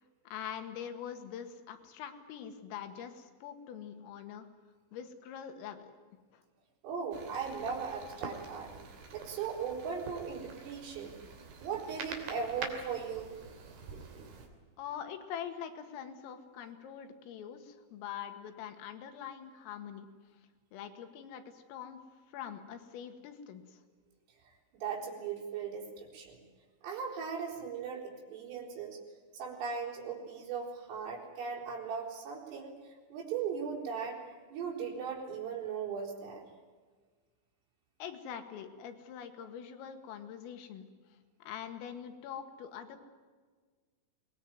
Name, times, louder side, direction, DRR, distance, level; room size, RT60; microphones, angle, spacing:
voice 1, 0.3-4.5 4.9-5.9 6.3-6.4 14.8-20.1 20.7-22.0 22.3-23.8 38.0-40.9 41.4-43.0, left 8 dB, 85° left, 7 dB, 4.5 m, -44 dB
voice 2, 6.8-8.7 9.1-11.2 11.6-13.3 24.8-26.4 26.8-29.0 29.3-34.2 34.5-36.4, right 6 dB, 75° right, -3 dB, 6.9 m, -38 dB
sound 1, 7.1-14.5, right 4 dB, 55° right, 4.5 m, -46 dB
23.0 x 20.0 x 9.4 m, 1.5 s
omnidirectional pair, 5.8 m